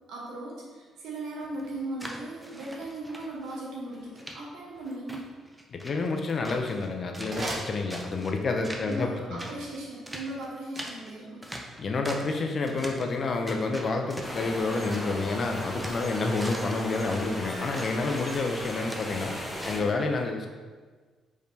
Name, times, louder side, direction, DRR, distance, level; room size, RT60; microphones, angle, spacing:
voice 1, 0.1-5.3 8.8-11.5, right 1 dB, 85° right, -4 dB, 1.1 m, -38 dB
sound 1, 1.4-3.6 3.9-4.4 4.8-6.9 7.1-8.3 8.6-9.1 9.4-12.4 12.6-13.1 13.5-15.3 15.6-19.8, right 1 dB, 10° right, 0.5 m, -42 dB
voice 2, 5.7-9.4 11.8-19.3 19.6-20.5, left 3 dB, 45° left, 3 dB, 0.5 m, -29 dB
sound 2, 7.1-8.5, right 1 dB, 40° right, 0.9 m, -38 dB
sound 3, 14.2-19.8, equal, 5° left, 1.0 m, -36 dB
4.8 x 3.3 x 2.7 m, 1.4 s
cardioid pair, 90°, 0 cm